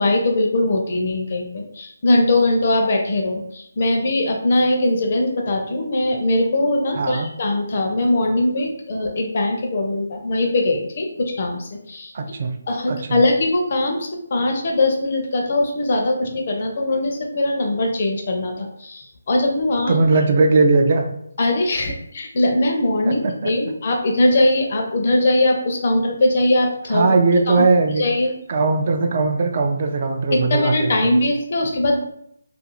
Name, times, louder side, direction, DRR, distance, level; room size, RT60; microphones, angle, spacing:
voice 1, 0.0-12.1 12.7-20.0 21.4-27.1 27.5-27.7 28.0-28.3 30.3-32.0, left 2 dB, 40° left, 2 dB, 0.5 m, -21 dB
voice 2, 7.0-7.3 12.1-12.5 12.9-13.2 19.9-21.0 23.1-23.5 26.9-28.0 28.5-31.2, right 3 dB, 40° right, 5 dB, 0.3 m, -19 dB
2.4 x 2.3 x 3.0 m, 0.74 s
hypercardioid pair, 170°, 0 cm